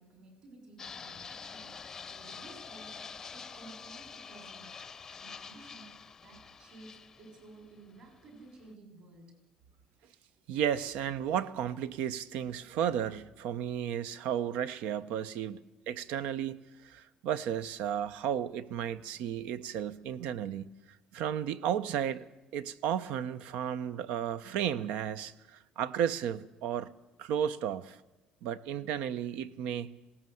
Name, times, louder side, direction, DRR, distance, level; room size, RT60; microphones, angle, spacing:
voice 1, 0.0-1.7 2.0-2.9 3.3-4.7 5.1-9.3, right 2 dB, 45° right, 5.9 m, -54 dB
Fixed-wing aircraft airplane, 0.8-8.7, left 5 dB, 20° left, 0.7 m, -47 dB
voice 2, 10.5-20.7 21.1-22.3 22.5-26.9 27.2-28.0 28.4-29.9, right 9 dB, 75° right, 1.0 m, -33 dB
20.5 x 17.5 x 8.0 m
cardioid pair, 170°, 2 cm